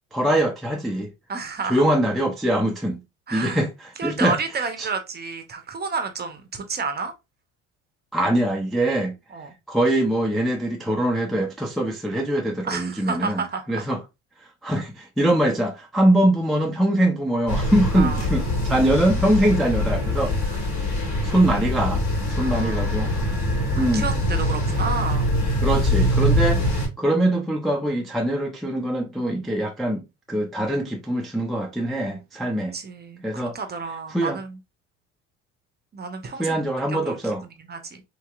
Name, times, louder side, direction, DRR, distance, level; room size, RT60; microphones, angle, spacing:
voice 1, 0.1-1.1 1.7-3.0 3.3-3.7 4.0-4.4 4.8-4.9 8.1-9.1 9.7-14.0 14.6-20.4 21.2-22.1 22.4-23.1 23.8-24.1 25.6-32.8 33.2-33.6 34.1-34.4 36.4-37.4, right 1 dB, ahead, 0.4 m, -23 dB
voice 2, 1.3-1.8 3.3-3.6 4.0-7.1 9.3-9.5 12.6-13.6 17.9-18.3 20.5-20.6 22.3-23.1 23.8-25.3 32.7-34.6 35.9-36.6 36.9-38.0, right 4 dB, 25° right, 0.8 m, -31 dB
sound 1, 17.5-26.9, left 1 dB, 45° left, 1.8 m, -23 dB
2.9 x 2.8 x 2.3 m
hypercardioid pair, 75°, 39 cm